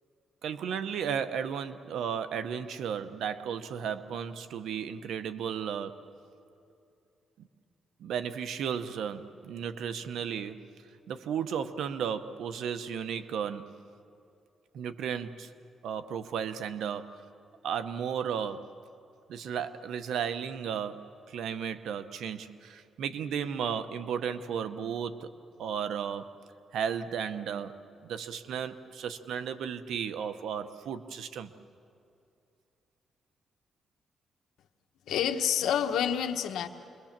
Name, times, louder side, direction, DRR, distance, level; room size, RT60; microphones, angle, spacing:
voice 1, 0.4-6.0 7.4-7.5 8.0-10.7 11.1-13.7 14.7-15.5 15.8-17.3 17.6-18.7 19.3-25.3 25.6-26.4 26.7-31.5, right 7 dB, 85° right, 11 dB, 1.0 m, -34 dB
voice 2, 35.1-36.7, left 9 dB, 90° left, 5 dB, 1.2 m, -28 dB
27.5 x 22.0 x 7.4 m, 2.6 s
cardioid pair, 100°, 0 cm